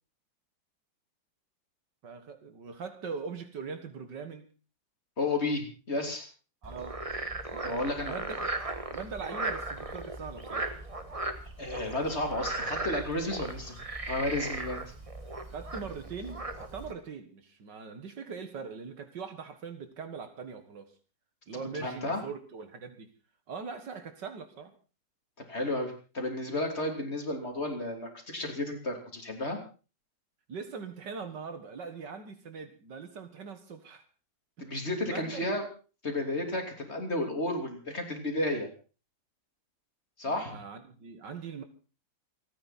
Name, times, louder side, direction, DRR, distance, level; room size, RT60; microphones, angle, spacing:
voice 1, 2.0-4.5 6.6-7.0 7.5-8.6 8.9-10.7 11.6-11.7 15.5-20.9 21.5-23.1 23.5-24.7 30.5-34.0 34.6-34.7 35.0-35.5 40.3-41.6, right 5 dB, 65° right, 2.2 m, -41 dB
voice 2, 5.2-6.3 7.6-8.1 11.6-13.8 14.1-14.8 21.8-22.2 25.5-29.6 34.6-35.6 36.0-38.7 40.2-40.5, left 1 dB, 35° left, 3.3 m, -32 dB
Frog, 6.6-16.9, right 2 dB, 20° right, 1.3 m, -37 dB
28.0 x 10.0 x 4.3 m
omnidirectional pair, 2.0 m